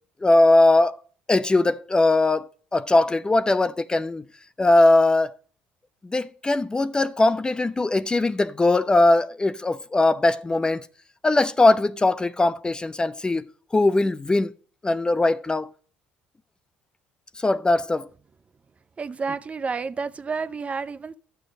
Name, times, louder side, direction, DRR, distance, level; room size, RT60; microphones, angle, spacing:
voice 1, 0.2-1.0 1.3-4.2 4.6-5.3 6.1-10.8 11.2-13.5 13.7-14.5 14.8-15.7 17.4-18.1, left 2 dB, 20° left, 0.6 m, -20 dB
voice 2, 19.0-21.1, right 5 dB, 30° right, 0.6 m, -30 dB
12.0 x 6.9 x 5.2 m
hypercardioid pair, 65°, 4 cm